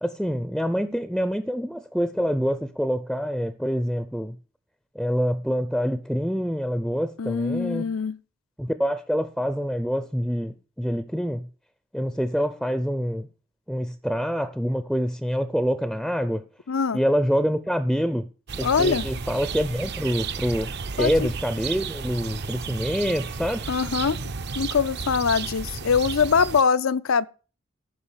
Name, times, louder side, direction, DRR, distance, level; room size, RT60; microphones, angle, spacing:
voice 1, 0.0-4.4 4.9-7.9 8.6-11.4 11.9-13.3 13.7-16.4 16.9-18.3 18.6-23.7, equal, ahead, 0.6 m, -26 dB
voice 2, 7.2-8.2 16.7-17.0 18.6-19.1 21.0-21.3 23.7-24.2 24.6-27.3, left 5 dB, 70° left, 0.6 m, -23 dB
sound 1, 18.5-26.6, right 5 dB, 55° right, 0.8 m, -33 dB
14.5 x 5.9 x 7.3 m
head